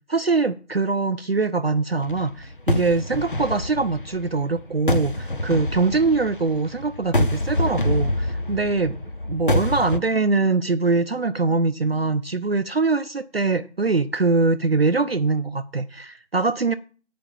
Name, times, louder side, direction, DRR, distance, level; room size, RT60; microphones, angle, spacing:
voice 1, 0.1-9.0 9.2-16.7, right 3 dB, 55° right, 0.6 m, -23 dB
sound 1, 2.0-10.0, left 1 dB, 45° left, 0.5 m, -26 dB
9.0 x 5.1 x 7.1 m
figure-of-eight pair, 165°, 36 cm